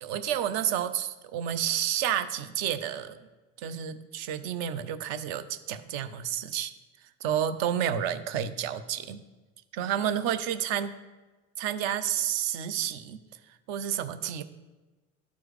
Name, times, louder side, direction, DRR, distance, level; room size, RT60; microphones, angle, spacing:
voice 1, 0.0-3.2 3.6-6.7 7.2-9.2 9.7-10.9 11.6-13.2 13.7-14.4, right 10 dB, 45° right, 12 dB, 0.6 m, -30 dB
12.0 x 4.6 x 3.3 m, 1.2 s
figure-of-eight pair, 70°, 40 cm